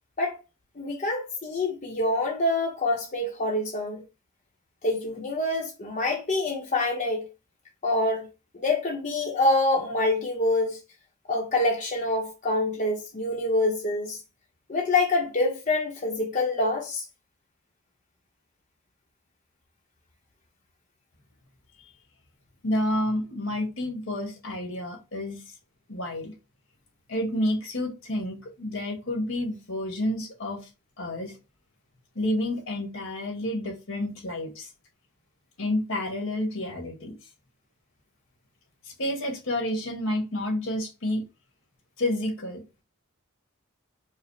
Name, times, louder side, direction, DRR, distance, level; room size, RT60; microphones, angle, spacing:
voice 1, 0.8-4.0 4.8-7.2 7.8-8.3 8.5-10.8 11.3-14.2 14.7-17.0, left 2 dB, 35° left, 0.7 m, -26 dB
voice 2, 22.6-25.4 25.9-26.3 27.1-30.7 31.0-31.3 32.1-34.7 35.6-37.2 38.8-41.2 42.0-42.8, left 1 dB, 70° left, 1.2 m, -30 dB
4.9 x 2.0 x 3.1 m
head